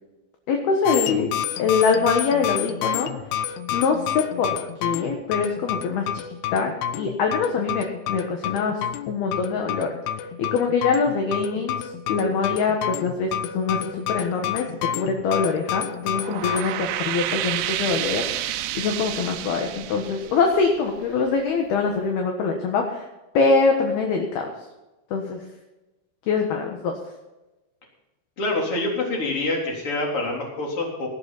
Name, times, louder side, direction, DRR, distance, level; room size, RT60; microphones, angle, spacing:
voice 1, 0.5-1.3 1.6-3.1 3.7-4.5 4.8-6.2 6.5-8.8 9.1-9.9 10.4-14.7 14.9-18.2 18.7-23.0 23.3-24.5 25.1-25.4 26.3-26.9, left 5 dB, 65° left, 3 dB, 2.9 m, -23 dB
sound 1, 0.9-16.6, left 10 dB, 85° left, 2.3 m, -29 dB
sound 2, 16.0-21.3, right 13 dB, 85° right, 3.4 m, -30 dB
voice 2, 28.4-31.1, left 2 dB, 30° left, -1 dB, 3.9 m, -26 dB
19.0 x 11.5 x 4.2 m, 1.0 s
omnidirectional pair, 5.8 m